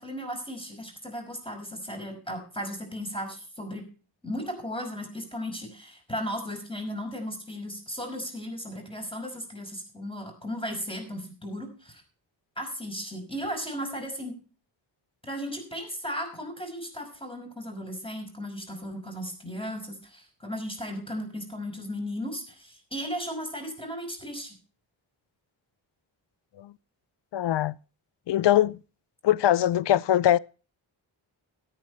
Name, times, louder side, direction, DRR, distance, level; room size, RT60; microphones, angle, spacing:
voice 1, 0.0-3.8 4.2-12.0 12.6-14.4 15.2-24.6, equal, 10° left, 5.5 m, -36 dB
voice 2, 27.3-27.8 28.3-28.8 29.2-30.4, left 12 dB, 60° left, 0.5 m, -22 dB
13.5 x 9.5 x 4.3 m
cardioid pair, 40°, 48 cm